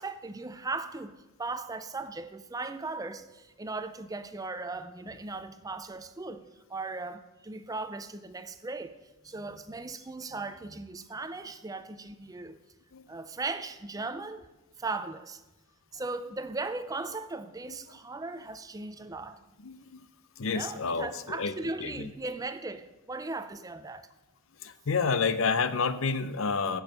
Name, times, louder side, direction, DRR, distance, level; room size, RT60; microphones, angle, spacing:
voice 1, 0.0-6.4 6.7-8.9 9.2-12.6 13.1-14.5 14.8-15.4 15.9-19.4 20.5-24.1, right 3 dB, 15° right, 0.4 m, -38 dB
voice 2, 19.6-20.1 20.4-21.5 21.8-22.1 24.6-26.8, left 5 dB, 60° left, 0.7 m, -29 dB
15.0 x 6.3 x 6.5 m
head